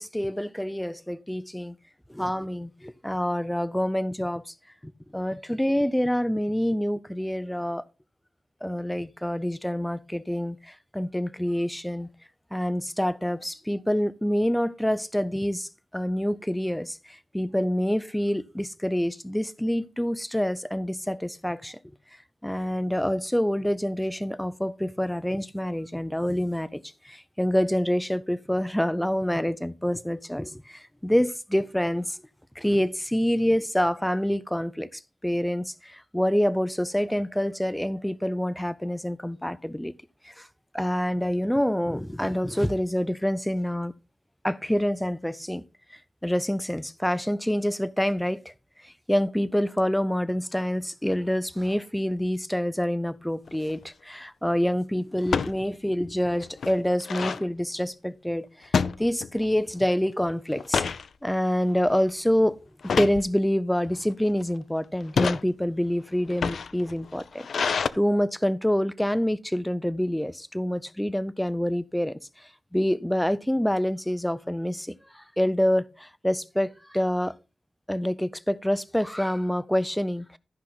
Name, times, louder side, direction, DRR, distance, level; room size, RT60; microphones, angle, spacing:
voice 1, 0.0-1.8 2.1-4.4 4.8-7.8 8.6-12.1 12.5-21.8 22.4-32.2 32.6-39.9 40.2-40.5 40.7-43.9 44.4-45.6 46.2-48.4 48.8-58.7 59.0-60.8 61.2-62.6 62.8-72.2 72.7-77.3 77.9-80.4, equal, 5° left, 0.4 m, -27 dB
sound 1, 53.5-53.8 55.2-55.6 56.0-56.1 56.4-57.4 58.7-59.5 59.9-60.1 60.5-61.1 61.6-61.9 62.8-63.2 64.0-64.4 65.0-65.4 66.2-67.9, left 6 dB, 75° left, 0.5 m, -27 dB
13.5 x 5.8 x 3.9 m
wide cardioid pair, 155°, 0 cm